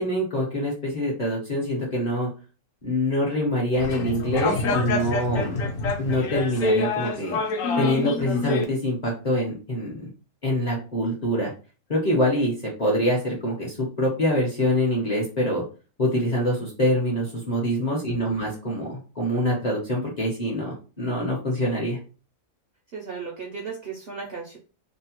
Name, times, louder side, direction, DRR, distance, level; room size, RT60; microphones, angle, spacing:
voice 1, 0.0-2.3 2.8-5.6 6.0-7.4 7.8-10.1 10.4-11.5 11.9-12.5 12.8-15.6 16.0-22.0, left 1 dB, 40° left, -4 dB, 0.6 m, -25 dB
sound 1, 3.7-8.6, left 3 dB, 70° left, 0.9 m, -26 dB
voice 2, 18.1-18.6 22.9-24.6, right 5 dB, 60° right, -2 dB, 0.6 m, -36 dB
2.8 x 2.0 x 2.8 m, 0.36 s
omnidirectional pair, 1.5 m